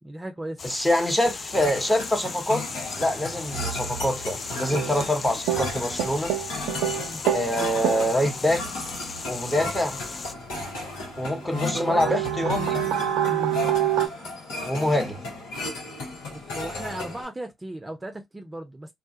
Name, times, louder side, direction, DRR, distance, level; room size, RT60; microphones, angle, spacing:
voice 1, 0.0-0.8 7.0-7.2 11.5-12.2 13.3-13.6 16.3-18.9, right 1 dB, 25° right, 0.6 m, -36 dB
sound 1, 0.6-10.3, left 4 dB, 45° left, 0.4 m, -37 dB
voice 2, 0.6-2.6 3.0-6.3 7.3-8.6 9.3-10.0 11.2-12.8 14.6-15.2, left 1 dB, 10° left, 1.0 m, -25 dB
sound 2, 1.2-17.2, left 2 dB, 85° left, 1.0 m, -34 dB
sound 3, 4.7-5.2 5.5-7.5 7.8-8.2 11.2-11.3 11.5-14.1, right 11 dB, 80° right, 0.3 m, -26 dB
2.3 x 2.3 x 2.7 m
hypercardioid pair, 45°, 0 cm